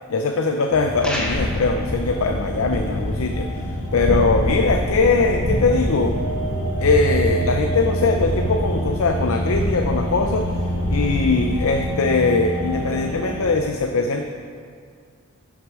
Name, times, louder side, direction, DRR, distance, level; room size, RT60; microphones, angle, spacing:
voice 1, 0.1-3.5 3.9-6.2 6.8-10.5 10.9-14.2, left 3 dB, 80° left, 5 dB, 0.5 m, -21 dB
sound 1, 0.7-13.5, right 1 dB, 60° left, 2.2 m, -27 dB
sound 2, 1.0-1.7, left 1 dB, 5° left, 1.1 m, -28 dB
sound 3, 1.3-11.9, left 1 dB, 40° left, 1.0 m, -27 dB
9.7 x 6.2 x 6.2 m, 2.2 s
head